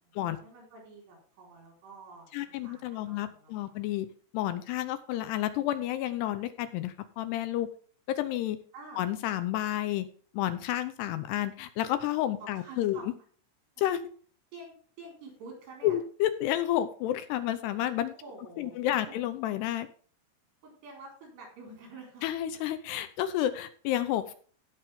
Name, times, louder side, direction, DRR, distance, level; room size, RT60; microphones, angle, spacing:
voice 1, 0.0-3.8 8.7-9.0 12.4-13.1 14.5-16.0 18.1-18.8 19.1-19.2 20.6-22.2, right 3 dB, 70° right, 0 dB, 6.6 m, -48 dB
voice 2, 2.3-4.1 4.3-7.7 8.1-8.6 9.0-10.1 10.3-13.1 13.8-14.0 15.8-18.1 18.6-19.9 22.2-24.3, left 12 dB, 80° left, 12 dB, 2.7 m, -30 dB
16.5 x 6.0 x 3.6 m, 0.43 s
omnidirectional pair, 5.1 m